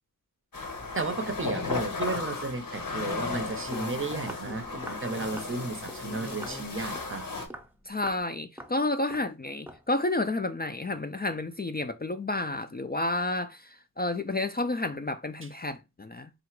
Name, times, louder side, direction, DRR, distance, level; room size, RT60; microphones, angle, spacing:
sound 1, 0.5-7.5, left 3 dB, 75° left, 1.0 m, -35 dB
voice 1, 0.9-7.3, right 3 dB, 40° right, 0.6 m, -33 dB
Human voice, 3.6-7.2 7.6-7.7 8.2-8.3, left 2 dB, 90° left, 1.5 m, -44 dB
Walk footsteps, 3.7-3.9 4.3-4.5 4.8-5.1 5.4-5.6 5.9-6.1 6.4-6.6 6.9-7.2 7.5-7.7 8.0-8.3 8.6-8.8 9.1-9.3 9.7-9.9, right 1 dB, 5° right, 0.7 m, -43 dB
voice 2, 7.9-16.3, left 2 dB, 30° left, 0.4 m, -30 dB
3.8 x 2.4 x 4.4 m
wide cardioid pair, 55°, 34 cm